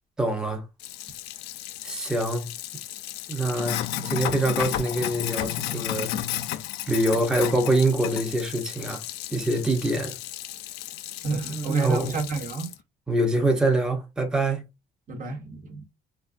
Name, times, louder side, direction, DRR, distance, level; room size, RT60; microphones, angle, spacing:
voice 1, 0.2-0.6 1.8-2.5 3.3-6.2 6.9-9.0 9.3-10.1 11.4-12.2 13.1-14.6, right 1 dB, 5° right, 0.7 m, -25 dB
Sink (filling or washing), 0.8-12.7, left 13 dB, 85° left, 0.4 m, -33 dB
voice 2, 11.2-12.7 15.1-15.8, right 3 dB, 50° right, 1.1 m, -30 dB
3.6 x 2.3 x 2.4 m
cardioid pair, 110°, 17 cm